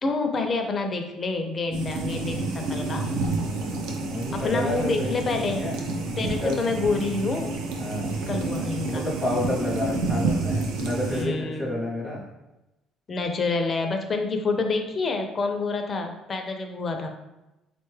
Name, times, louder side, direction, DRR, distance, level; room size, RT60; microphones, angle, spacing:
voice 1, 0.0-3.1 4.3-5.7 6.2-7.5 8.3-9.0 11.1-11.8 13.1-17.1, left 3 dB, 30° left, 4 dB, 0.4 m, -27 dB
sound 1, 1.7-11.3, right 3 dB, 90° right, 0.5 m, -29 dB
voice 2, 3.4-5.8 6.2-6.6 7.8-8.2 8.8-12.2, left 1 dB, 5° right, -5 dB, 0.7 m, -30 dB
3.8 x 2.2 x 3.1 m, 0.98 s
cardioid pair, 115°, 0 cm